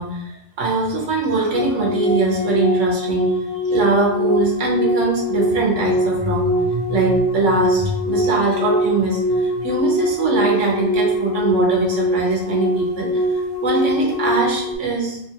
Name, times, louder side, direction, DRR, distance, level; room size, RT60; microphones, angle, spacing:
voice 1, 0.0-3.4 3.7-13.2 13.6-15.2, right 2 dB, 60° right, -2 dB, 0.9 m, -21 dB
sound 1, 1.5-14.8, equal, 75° left, 1.1 m, -22 dB
3.0 x 2.3 x 2.8 m, 0.78 s
omnidirectional pair, 1.6 m